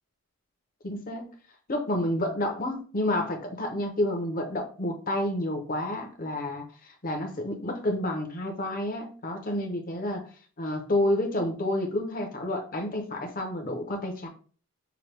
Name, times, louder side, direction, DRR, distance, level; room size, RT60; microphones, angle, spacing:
voice 1, 0.8-1.3 1.7-10.2 10.6-14.3, left 1 dB, 40° left, 4 dB, 0.8 m, -29 dB
5.9 x 2.3 x 3.3 m, 0.41 s
head